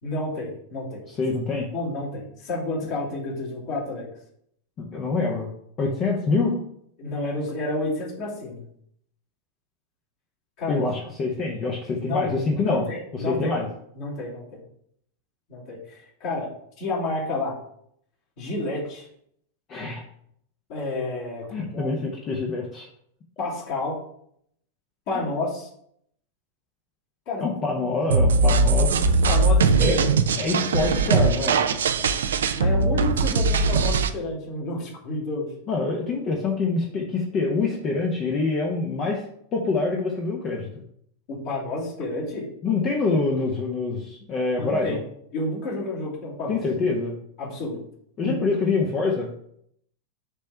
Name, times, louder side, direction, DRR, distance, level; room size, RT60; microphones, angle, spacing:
voice 1, 0.0-1.0 1.7-4.1 7.0-8.6 10.6-10.8 12.0-13.5 13.9-14.6 15.5-16.5 16.8-17.6 18.4-19.1 20.7-21.9 23.4-24.0 25.1-25.7 27.3-27.4 29.3-30.1 30.8-30.9 32.5-35.5 41.3-42.4 44.6-45.0 45.3-46.6 47.4-47.8 48.2-48.4, left 2 dB, 50° left, -6 dB, 2.9 m, -30 dB
voice 2, 1.1-1.7 4.8-5.5 5.8-6.6 10.7-12.9 13.1-13.7 19.7-20.0 21.5-22.9 25.1-25.2 27.4-28.9 29.8-30.0 30.4-31.6 35.7-39.2 39.5-40.7 42.6-45.0 46.5-47.1 48.2-49.3, left 3 dB, 30° left, 0 dB, 1.1 m, -25 dB
sound 1, 28.1-34.1, right 3 dB, 65° right, 0.5 m, -20 dB
6.6 x 3.4 x 5.7 m, 0.68 s
figure-of-eight pair, 90°, 0 cm